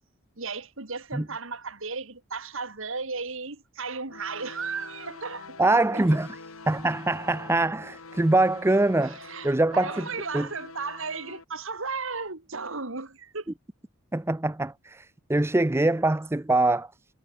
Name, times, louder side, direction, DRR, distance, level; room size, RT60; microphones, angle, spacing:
voice 1, 0.4-6.0 9.0-13.5, right 4 dB, 60° right, 2.5 m, -35 dB
sound 1, 4.1-11.4, left 3 dB, 75° left, 2.3 m, -45 dB
voice 2, 5.6-6.3 6.7-9.2 9.4-10.1 10.3-10.5 14.1-16.9, right 2 dB, 10° right, 0.5 m, -23 dB
head